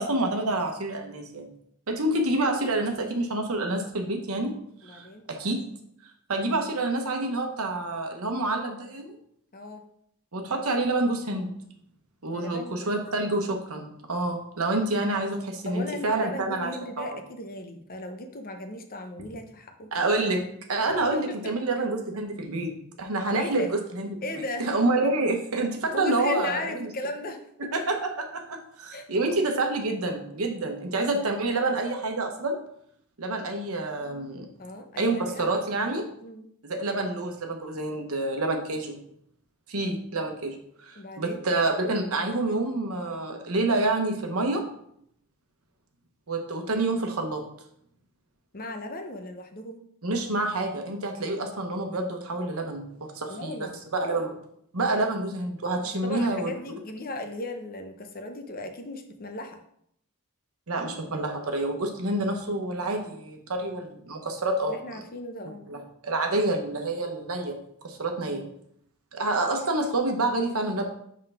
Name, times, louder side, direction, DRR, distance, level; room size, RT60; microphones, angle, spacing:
voice 1, 0.0-1.5 1.9-4.5 4.8-5.6 6.3-9.2 10.3-11.5 12.2-17.2 19.9-20.4 20.7-22.7 23.0-26.9 27.6-32.6 33.2-34.5 35.0-36.1 36.6-39.0 39.7-40.6 40.8-44.6 46.3-47.4 50.0-54.4 54.7-56.5 60.7-64.8 65.7-67.6 67.8-68.4 69.1-70.8, right 2 dB, 70° right, 4 dB, 1.0 m, -28 dB
voice 2, 4.8-5.2 9.5-9.9 12.3-13.3 15.7-19.9 21.4-21.5 23.4-23.7 24.2-24.7 25.9-27.4 28.9-29.1 34.6-35.5 36.2-36.4 41.0-41.4 48.5-49.8 53.3-53.7 56.0-59.6 64.7-65.7 68.3-68.5, left 1 dB, 40° left, 6 dB, 0.7 m, -37 dB
5.4 x 3.7 x 5.7 m, 0.71 s
head